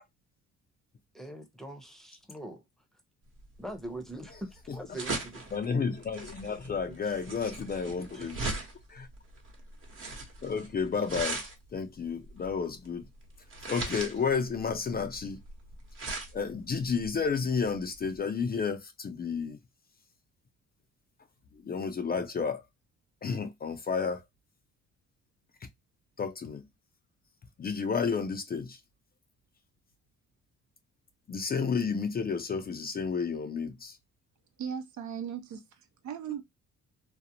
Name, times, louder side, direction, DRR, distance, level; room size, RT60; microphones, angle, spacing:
voice 1, 1.1-2.6 3.6-5.4 6.9-7.2 7.8-8.3, right 1 dB, ahead, 0.7 m, -42 dB
sound 1, 3.4-18.2, right 3 dB, 45° right, 1.0 m, -40 dB
voice 2, 5.5-8.4 8.9-9.1 10.4-11.4 11.7-13.1 13.7-15.4 16.3-19.6 21.5-22.6 23.2-24.2 26.2-26.7 27.6-28.8 31.3-34.0, left 5 dB, 30° left, 0.4 m, -31 dB
voice 3, 34.6-36.4, right 8 dB, 70° right, 0.7 m, -38 dB
2.5 x 2.0 x 2.7 m
cardioid pair, 90°, 30 cm